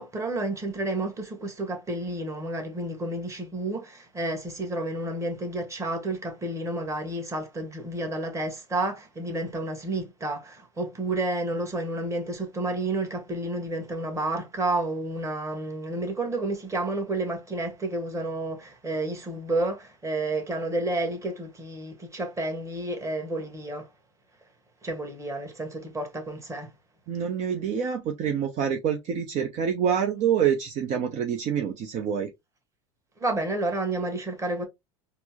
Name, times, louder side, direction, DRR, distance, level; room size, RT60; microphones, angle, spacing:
voice 1, 0.0-23.9 24.8-26.7 33.2-34.6, right 2 dB, 20° right, 1.4 m, -30 dB
voice 2, 27.1-32.3, right 8 dB, 45° right, 0.7 m, -26 dB
4.3 x 2.1 x 2.8 m
hypercardioid pair, 95°, 16 cm